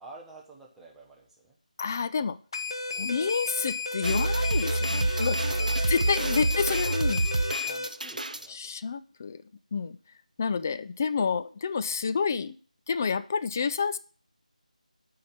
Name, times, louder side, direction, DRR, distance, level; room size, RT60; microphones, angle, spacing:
voice 1, 0.0-1.6 2.9-3.3 5.4-6.8 7.6-8.6, right 2 dB, 5° right, -3 dB, 0.9 m, -50 dB
voice 2, 1.8-2.4 3.0-5.4 5.9-7.3 8.5-9.4 9.7-10.0 10.4-12.6 12.9-14.0, left 5 dB, 20° left, 12 dB, 0.4 m, -29 dB
sound 1, 2.5-7.9, left 3 dB, 40° left, 0.9 m, -33 dB
sound 2, 4.0-8.5, right 2 dB, 75° right, 0.7 m, -27 dB
8.1 x 4.7 x 7.2 m, 0.40 s
figure-of-eight pair, 165°, 4 cm